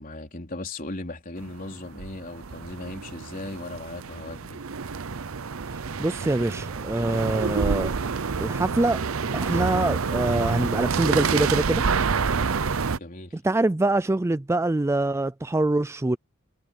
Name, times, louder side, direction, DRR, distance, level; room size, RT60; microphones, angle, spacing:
voice 1, 0.0-4.6 12.9-13.3, left 2 dB, 40° left, 4.1 m, -37 dB
sound 1, 1.4-13.0, right 5 dB, 75° right, 0.7 m, -28 dB
voice 2, 5.7-7.9 8.4-9.0 9.3-11.8 13.4-16.2, right 2 dB, 10° right, 0.4 m, -24 dB
head